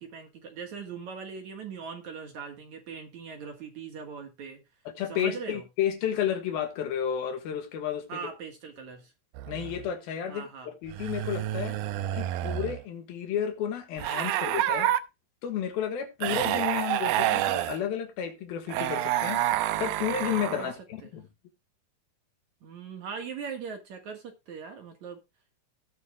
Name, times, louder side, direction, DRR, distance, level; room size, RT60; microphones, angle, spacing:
voice 1, 0.0-4.6 5.1-5.6 8.1-9.1 10.3-10.7 20.6-20.7 21.0-21.1 22.6-25.2, right 6 dB, 55° right, 2.5 m, -40 dB
voice 2, 5.0-8.2 9.5-11.8 12.1-14.9 15.4-19.4 19.8-21.3, left 9 dB, 70° left, 3.1 m, -32 dB
sound 1, 9.4-9.9 10.9-12.8 14.0-15.0 16.2-17.8 18.7-20.7, right 13 dB, 80° right, 2.3 m, -28 dB
19.5 x 6.9 x 2.3 m
omnidirectional pair, 4.7 m